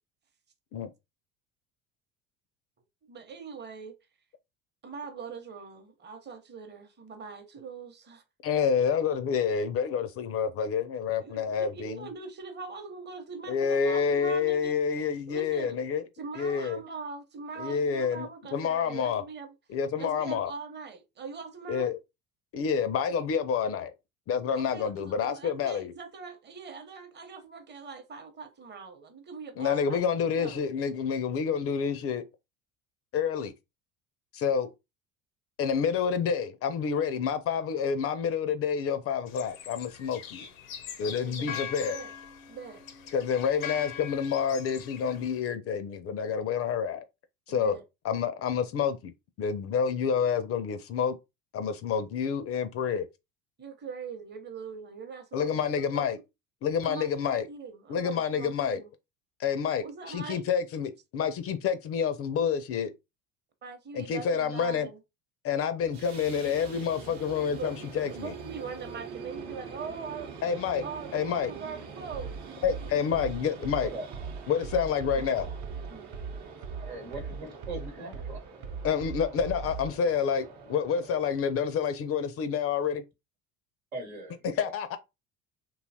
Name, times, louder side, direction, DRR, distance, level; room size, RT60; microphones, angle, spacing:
voice 1, 3.0-4.0 4.8-8.2 11.2-14.8 15.3-15.8 16.2-19.5 19.9-21.9 24.5-30.6 41.0-42.1 42.5-42.8 47.5-47.8 53.6-56.1 56.8-58.9 59.8-60.4 63.6-65.0 67.5-67.8 68.1-70.5 70.8-72.4 75.2-75.3 75.9-76.1, right 5 dB, 25° right, 0.8 m, -42 dB
voice 2, 8.4-12.1 13.5-16.0 16.4-16.8 17.6-19.2 19.7-20.5 21.7-22.0 22.5-23.9 24.3-25.9 29.6-32.2 33.1-33.5 34.3-34.7 35.6-40.5 41.0-42.0 43.1-47.0 47.5-47.8 48.0-49.1 49.4-51.2 51.5-53.1 55.3-56.2 56.6-57.5 57.9-58.8 59.4-62.9 63.9-64.9 65.4-68.3 70.4-70.8 71.1-71.5 72.6-73.9 74.5-75.5 78.8-83.0 84.6-85.0, left 7 dB, 35° left, 0.4 m, -28 dB
sound 1, 39.3-45.4, left 8 dB, 90° left, 0.6 m, -41 dB
sound 2, 65.8-81.3, right 5 dB, 65° right, 0.9 m, -45 dB
sound 3, 72.1-80.0, right 5 dB, 50° right, 0.5 m, -39 dB
voice 3, 76.8-78.4 83.9-84.7, right 2 dB, 85° right, 1.2 m, -40 dB
2.8 x 2.3 x 2.7 m
hypercardioid pair, 70°, 40 cm